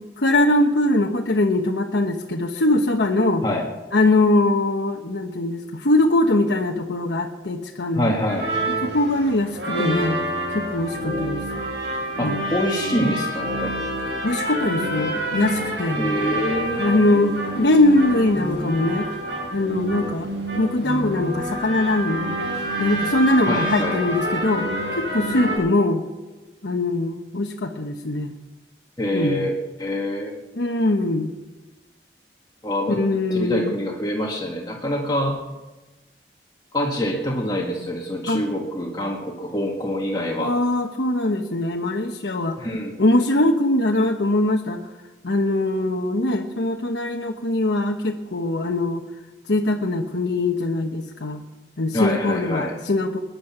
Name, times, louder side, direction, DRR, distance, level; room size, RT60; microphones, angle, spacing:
voice 1, 0.2-3.4 3.9-8.1 8.8-10.2 10.5-11.4 12.2-12.4 14.2-16.0 16.8-19.1 19.5-20.3 20.5-22.4 22.8-24.7 25.0-26.0 26.6-28.4 29.1-29.5 30.6-31.3 32.9-33.8 38.3-38.4 40.4-42.6 43.0-44.8 45.2-49.0 49.5-51.4 51.8-53.2, left 2 dB, 85° left, 1 dB, 1.1 m, -21 dB
voice 2, 7.9-8.5 12.2-13.7 16.0-17.2 23.4-24.0 29.0-29.5 29.8-30.4 32.6-33.0 33.3-35.4 36.7-40.6 42.6-42.9 51.9-52.7, left 1 dB, 25° left, -1 dB, 1.7 m, -25 dB
sound 1, 8.3-25.6, right 1 dB, 90° right, 7.4 m, -27 dB
21.0 x 10.5 x 5.9 m, 1.2 s
head